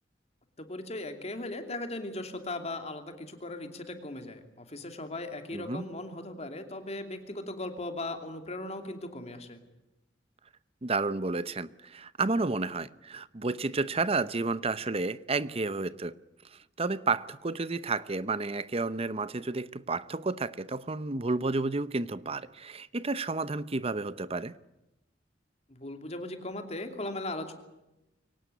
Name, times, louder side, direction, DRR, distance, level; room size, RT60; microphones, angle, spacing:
voice 1, 0.6-9.6 25.7-27.5, left 2 dB, 35° left, 2.8 m, -38 dB
voice 2, 5.5-5.9 10.8-16.1 16.5-24.6, right 3 dB, 35° right, 0.8 m, -31 dB
23.5 x 18.0 x 9.6 m
head